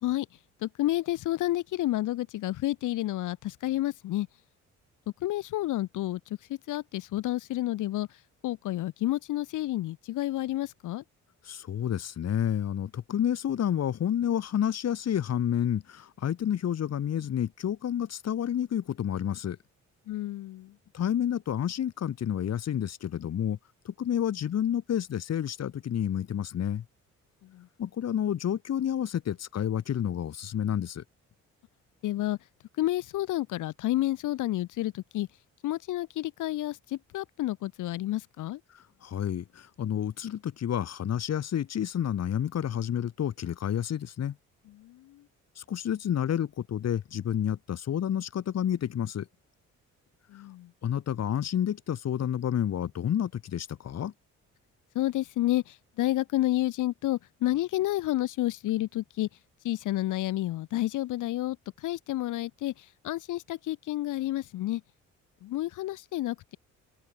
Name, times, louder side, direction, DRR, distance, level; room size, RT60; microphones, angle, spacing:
voice 1, 0.6-4.3 5.2-11.0 20.1-20.7 27.4-27.7 32.0-32.4 32.8-35.3 35.6-38.6 44.7-45.2 50.3-50.7 55.0-59.3 59.6-64.8 65.4-66.6, left 15 dB, 85° left, 1.7 m, -30 dB
voice 2, 11.5-19.6 20.9-23.6 23.9-26.8 27.8-31.0 38.7-44.4 45.6-49.3 50.8-54.1, left 10 dB, 55° left, 2.0 m, -30 dB
open air
cardioid pair, 90°, 30 cm